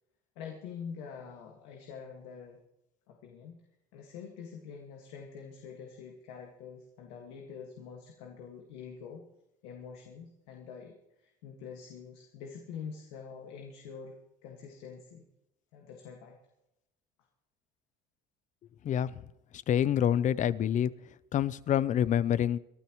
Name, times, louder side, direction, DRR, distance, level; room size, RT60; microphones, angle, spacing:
voice 1, 0.4-2.6 3.1-3.6 3.9-9.3 9.6-14.2 14.4-15.2 15.7-16.4, left 6 dB, 85° left, 1 dB, 1.9 m, -46 dB
voice 2, 18.8-19.2 19.7-20.9 21.3-22.6, left 10 dB, 45° left, 18 dB, 0.6 m, -27 dB
23.0 x 12.0 x 3.1 m, 0.85 s
supercardioid pair, 100°, 18 cm